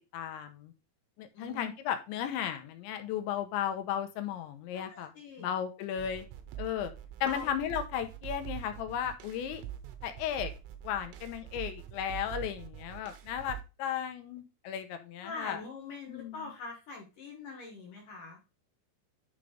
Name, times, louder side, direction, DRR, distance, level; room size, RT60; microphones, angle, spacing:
voice 1, 0.1-0.7 1.2-5.1 5.4-6.3 6.6-6.9 7.2-9.6 10.0-10.5 10.8-15.6 16.1-16.3, left 9 dB, 80° left, 8 dB, 3.2 m, -35 dB
voice 2, 1.3-1.7 4.7-5.5 7.2-7.5 15.2-18.4, left 3 dB, 55° left, 0 dB, 2.7 m, -43 dB
sound 1, 6.0-13.6, right 11 dB, 85° right, 3.4 m, -44 dB
10.5 x 3.7 x 5.0 m, 0.28 s
omnidirectional pair, 5.4 m